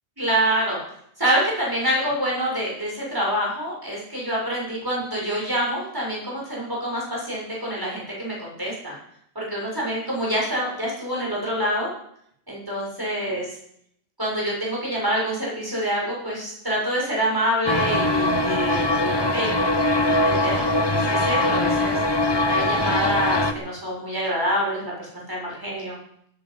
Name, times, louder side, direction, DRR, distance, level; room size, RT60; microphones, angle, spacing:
voice 1, 0.2-0.8 1.2-9.0 9.3-11.9 12.5-13.5 14.2-22.0 22.4-26.0, equal, 20° right, -4 dB, 6.6 m, -26 dB
sound 1, 17.7-23.5, left 1 dB, 25° left, 1.0 m, -22 dB
16.0 x 13.5 x 5.7 m, 0.71 s
omnidirectional pair, 1.0 m